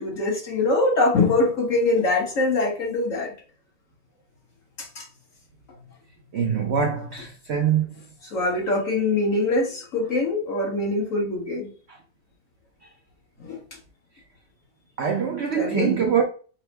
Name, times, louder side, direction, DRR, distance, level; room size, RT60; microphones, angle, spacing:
voice 1, 0.0-3.3 4.8-5.1 8.2-11.7 13.4-13.6 15.5-15.9, left 2 dB, 50° left, 1.5 m, -23 dB
voice 2, 6.3-7.9 15.0-16.2, right 7 dB, 75° right, 0.6 m, -23 dB
5.4 x 2.1 x 4.4 m
omnidirectional pair, 1.8 m